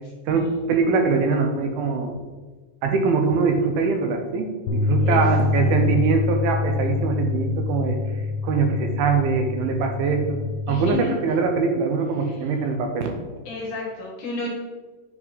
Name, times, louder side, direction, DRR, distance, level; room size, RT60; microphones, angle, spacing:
voice 1, 0.3-2.1 2.8-8.0 8.4-10.4 10.7-13.1, right 4 dB, 80° right, 4 dB, 2.5 m, -22 dB
Bass guitar, 4.7-10.9, left 4 dB, 90° left, 2.6 m, -25 dB
voice 2, 10.7-11.1 12.2-12.4 13.5-14.5, left 3 dB, 65° left, -2 dB, 2.3 m, -33 dB
7.3 x 5.5 x 4.0 m, 1.3 s
omnidirectional pair, 4.5 m